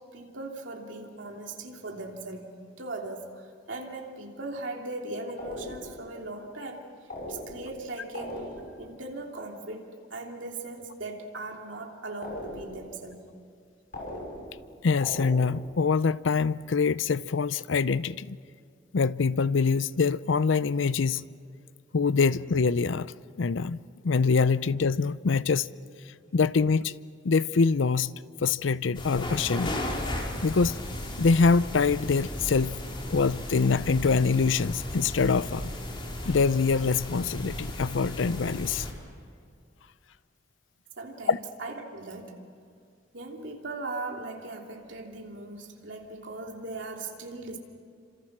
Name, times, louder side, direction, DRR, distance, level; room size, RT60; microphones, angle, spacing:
voice 1, 0.1-2.5 2.8-8.5 8.8-13.2 41.0-42.4 43.1-47.6, right 2 dB, 70° right, 3.1 m, -39 dB
sound 1, 5.4-6.1 7.1-7.8 8.1-8.9 12.2-12.9 13.9-14.7 15.0-15.7, left 1 dB, 50° left, 6.2 m, -39 dB
voice 2, 14.8-18.4 18.9-21.3 21.9-23.1 23.4-23.8 24.0-25.7 26.3-26.9 27.2-29.7 30.4-30.8 31.2-32.8 33.1-35.7 36.2-38.9 41.3-41.4, left 4 dB, 75° left, 0.6 m, -24 dB
sound 2, 28.9-38.9, left 1 dB, 25° left, 3.5 m, -35 dB
29.0 x 26.5 x 6.2 m
head